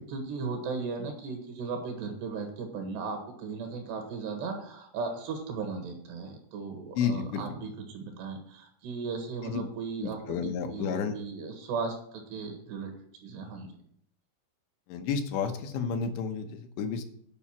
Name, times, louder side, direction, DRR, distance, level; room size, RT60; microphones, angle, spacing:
voice 1, 0.1-12.9 13.2-13.7, right 4 dB, 70° right, 5 dB, 3.6 m, -36 dB
voice 2, 7.0-7.7 9.4-9.7 10.0-11.2 14.9-17.0, left 6 dB, 80° left, 5 dB, 3.2 m, -31 dB
9.3 x 5.6 x 7.2 m, 0.67 s
omnidirectional pair, 5.2 m